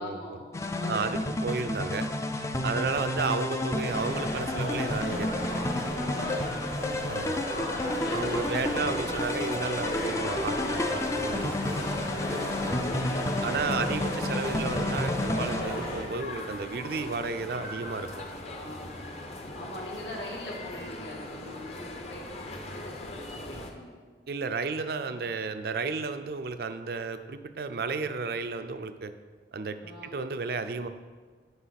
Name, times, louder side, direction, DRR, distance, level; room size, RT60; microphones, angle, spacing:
voice 1, 0.0-1.4 2.5-3.0 6.3-6.9 7.4-9.3 12.6-13.1 15.6-15.8 18.4-19.3 19.5-24.0 25.0-25.2 29.8-30.2, left 1 dB, 80° left, -3 dB, 2.0 m, -43 dB
sound 1, 0.5-15.6, left 2 dB, 15° left, 0.4 m, -31 dB
voice 2, 0.9-2.1 2.6-5.3 7.1-7.4 8.1-11.9 13.4-18.1 24.3-29.1 29.5-29.8 30.0-30.9, right 4 dB, 60° right, 9 dB, 0.5 m, -32 dB
sound 2, 3.8-16.0, left 1 dB, 60° left, 1.9 m, -35 dB
sound 3, 7.8-23.7, left 1 dB, 35° left, 0.8 m, -41 dB
9.8 x 5.5 x 4.1 m, 1.5 s
head